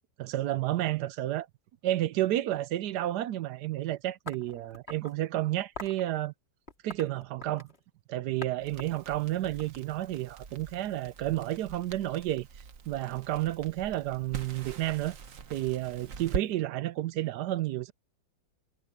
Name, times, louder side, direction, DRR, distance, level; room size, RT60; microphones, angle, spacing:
voice 1, 0.2-1.5 1.8-6.3 6.8-7.7 8.1-12.5 12.9-15.2 15.5-17.9, right 14 dB, 70° right, 1.1 m, -31 dB
sound 1, 4.3-5.2 5.7-6.0 6.7-7.8 8.4-8.5 8.8-10.2, left 2 dB, 30° left, 3.1 m, -44 dB
Crackle, 8.6-16.5, right 6 dB, 50° right, 1.4 m, -43 dB
omnidirectional pair, 2.0 m